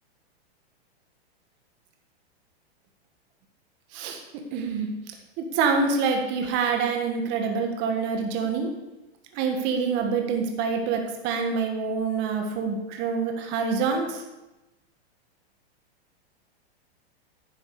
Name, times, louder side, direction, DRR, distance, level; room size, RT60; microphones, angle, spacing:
voice 1, 4.5-4.9 5.4-8.7 9.3-14.2, right 5 dB, 35° right, 3 dB, 1.5 m, -26 dB
10.5 x 7.2 x 4.8 m, 1.0 s
supercardioid pair, 150°, 32 cm